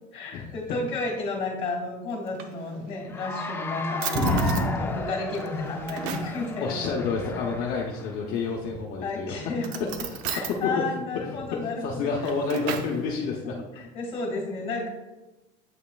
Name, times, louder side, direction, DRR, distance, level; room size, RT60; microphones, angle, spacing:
voice 1, 0.1-7.0 9.0-9.8 10.3-12.3 13.5-14.9, left 3 dB, 30° left, 2 dB, 2.0 m, -32 dB
Drawer open or close, 2.1-3.1 3.6-3.7 4.0-4.7 5.3-6.4 8.3-8.8 9.6-10.6 12.0-13.0, right 8 dB, 80° right, 0.7 m, -36 dB
Cheering / Applause, 3.0-8.2, left 3 dB, 15° left, 0.5 m, -35 dB
sound 1, 4.1-6.4 6.7-7.7 8.5-8.9 9.9-10.1, equal, 50° right, 1.8 m, -30 dB
voice 2, 6.6-9.4 9.8-10.2 10.6-10.7 11.2-13.8, left 4 dB, 55° left, -1 dB, 0.8 m, -30 dB
8.1 x 5.5 x 2.3 m, 1.1 s
cardioid pair, 135°, 18 cm